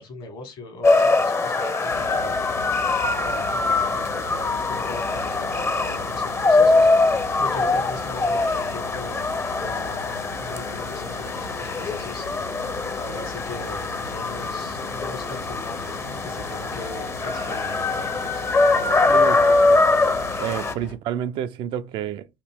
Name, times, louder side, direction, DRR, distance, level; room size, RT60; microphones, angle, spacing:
voice 1, 0.0-9.3 9.6-19.7, left 2 dB, 60° left, 1.5 m, -39 dB
sound 1, 0.8-20.7, left 3 dB, 25° left, 0.6 m, -23 dB
sound 2, 1.9-21.0, left 2 dB, 85° left, 0.8 m, -39 dB
voice 2, 19.1-19.4 19.7-19.8 20.4-22.3, right 10 dB, 60° right, 0.4 m, -29 dB
2.9 x 2.7 x 4.4 m
hypercardioid pair, 55°, 10 cm